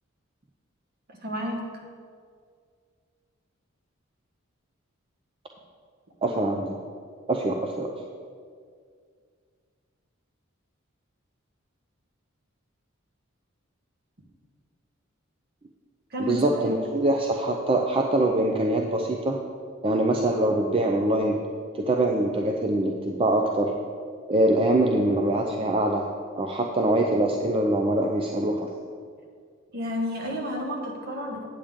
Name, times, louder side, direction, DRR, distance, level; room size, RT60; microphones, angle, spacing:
voice 1, 1.1-1.6 16.1-16.7 29.7-31.5, equal, 50° right, 0 dB, 1.4 m, -31 dB
voice 2, 6.2-6.8 7.3-7.9 16.2-19.4 19.8-21.4 21.7-23.7 24.3-26.1 26.4-28.7, right 1 dB, 25° right, 2 dB, 0.5 m, -23 dB
8.6 x 8.6 x 3.6 m, 2.1 s
head